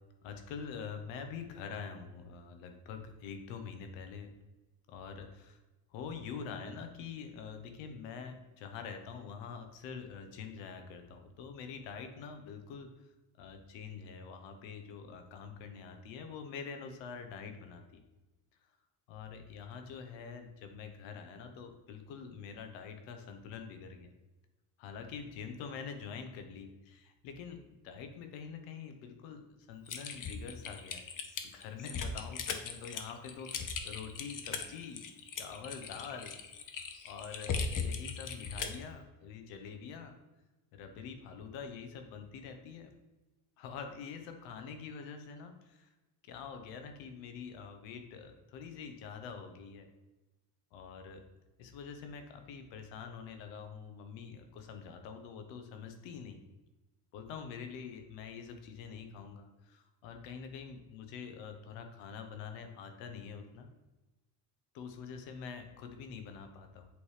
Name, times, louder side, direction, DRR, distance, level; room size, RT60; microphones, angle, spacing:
voice 1, 0.2-4.3 4.9-5.6 5.9-13.1 13.4-18.0 19.1-24.1 24.8-31.0 31.4-35.0 35.3-36.3 37.0-40.1 40.7-42.9 43.6-45.9 46.2-49.9 50.7-51.2 51.6-56.4 57.1-63.7 64.7-66.9, left 6 dB, 80° left, 6 dB, 1.2 m, -45 dB
Typing, 29.9-38.8, left 5 dB, 45° left, 1.0 m, -38 dB
8.4 x 3.2 x 4.9 m, 1.1 s
supercardioid pair, 80°, 44 cm